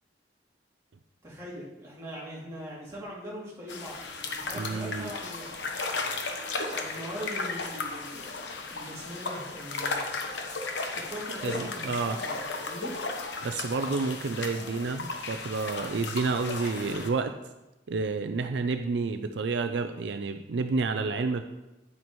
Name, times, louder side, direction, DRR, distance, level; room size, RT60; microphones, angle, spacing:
voice 1, 1.2-4.0 4.3-5.5 6.6-10.0 10.9-12.9, equal, 15° right, -7 dB, 2.8 m, -41 dB
sound 1, 3.7-17.1, left 3 dB, 75° left, 1.0 m, -35 dB
voice 2, 4.5-5.1 11.4-12.2 13.4-17.3 17.9-21.4, right 4 dB, 70° right, 7 dB, 0.5 m, -30 dB
9.7 x 9.2 x 3.1 m, 1.0 s
head